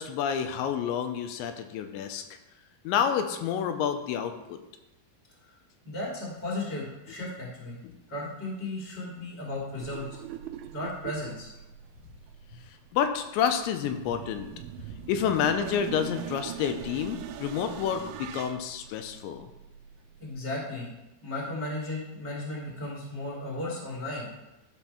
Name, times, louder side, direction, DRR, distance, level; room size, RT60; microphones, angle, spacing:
voice 1, 0.0-2.2 2.8-4.6 7.8-7.9 12.9-14.5 15.1-19.5, left 8 dB, 85° left, 7 dB, 2.9 m, -29 dB
voice 2, 5.8-7.8 8.1-10.1 10.7-11.5 20.2-20.9 21.2-24.3, left 2 dB, 5° left, -5 dB, 1.0 m, -35 dB
sound 1, 9.8-20.3, right 11 dB, 85° right, 2.9 m, -42 dB
12.5 x 4.5 x 5.7 m, 0.98 s
omnidirectional pair, 5.3 m